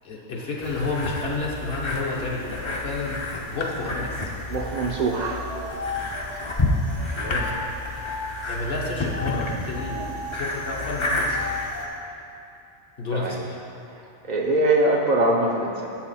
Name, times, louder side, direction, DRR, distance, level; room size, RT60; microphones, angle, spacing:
voice 1, 0.0-3.2 3.5-4.3 7.2-7.5 8.5-11.4 13.0-13.6, left 3 dB, 65° left, -3 dB, 1.0 m, -30 dB
sound 1, 0.6-11.9, left 2 dB, 35° left, 0.5 m, -30 dB
voice 2, 4.5-5.5 7.0-7.3 10.0-10.1 13.1-13.3 14.2-15.9, right 2 dB, 55° right, 0 dB, 0.5 m, -23 dB
sound 2, 5.1-8.5 9.0-12.0, left 3 dB, 90° left, 1.3 m, -36 dB
6.7 x 5.8 x 4.1 m, 2.6 s
omnidirectional pair, 1.1 m